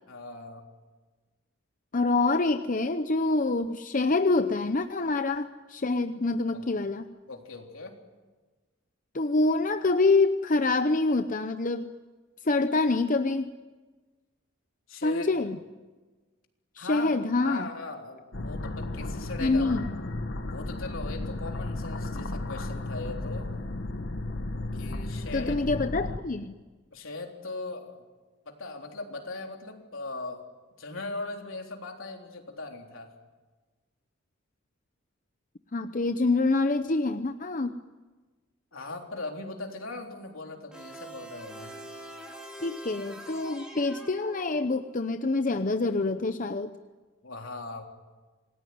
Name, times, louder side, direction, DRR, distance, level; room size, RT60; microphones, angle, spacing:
voice 1, 0.1-0.7 6.5-6.6 7.3-8.0 14.9-15.3 16.8-17.1 17.4-19.7 20.5-23.5 24.7-25.6 26.9-28.0 28.5-30.5 30.8-33.1 38.7-41.7 47.2-47.8, left 3 dB, 80° left, 2 dB, 3.7 m, -39 dB
voice 2, 1.9-7.0 9.1-11.9 12.4-13.5 15.0-15.6 16.8-17.7 19.4-19.9 25.3-26.6 35.7-37.8 42.6-46.7, left 3 dB, 40° left, 9 dB, 0.8 m, -26 dB
sound 1, 18.3-26.2, left 2 dB, 60° left, 1.2 m, -34 dB
sound 2, 40.7-45.0, equal, 5° right, 3.4 m, -44 dB
27.5 x 19.5 x 9.5 m, 1.3 s
head